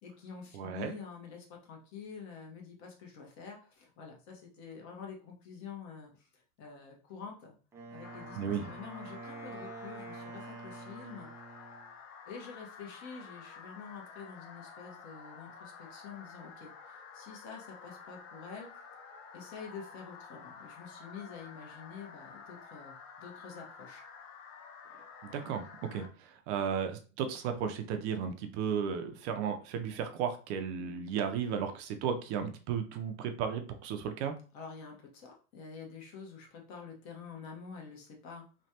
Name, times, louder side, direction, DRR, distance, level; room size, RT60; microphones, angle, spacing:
voice 1, 0.0-7.6 7.9-11.3 12.3-18.7 19.3-24.0 34.5-38.5, left 6 dB, 45° left, 1 dB, 1.0 m, -47 dB
voice 2, 0.5-0.9 8.4-8.7 25.2-34.3, right 7 dB, 60° right, 7 dB, 0.6 m, -34 dB
Wind instrument woodwind instrument, 7.7-11.9, right 3 dB, 10° right, 0.3 m, -47 dB
sound 1, 8.0-26.1, left 5 dB, 70° left, 0.7 m, -51 dB
3.2 x 2.2 x 2.8 m, 0.36 s
supercardioid pair, 130°, 39 cm